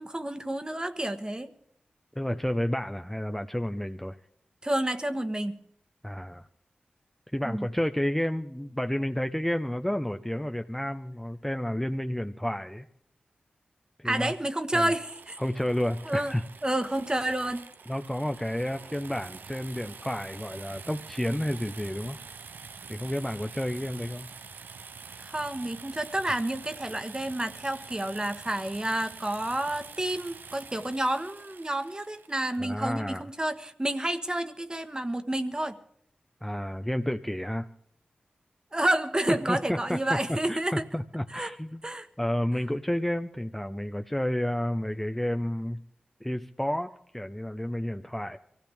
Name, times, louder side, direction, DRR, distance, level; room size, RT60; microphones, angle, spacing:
voice 1, 0.0-1.5 4.6-5.6 7.4-7.7 14.0-15.4 16.0-16.3 16.6-17.6 25.2-35.8 38.7-40.8 41.3-41.5 41.8-42.1, right 1 dB, 25° right, 9 dB, 1.3 m, -30 dB
voice 2, 2.2-4.2 6.0-6.5 7.3-12.9 14.0-14.3 14.7-14.9 15.4-16.4 17.9-22.2 22.9-24.3 32.6-33.2 36.4-37.7 39.5-41.8 42.2-45.8 46.2-48.4, equal, 5° left, 6 dB, 0.7 m, -31 dB
sound 1, 14.9-32.6, right 5 dB, 80° right, 0.5 m, -46 dB
23.5 x 16.0 x 3.5 m, 0.69 s
cardioid pair, 40°, 3 cm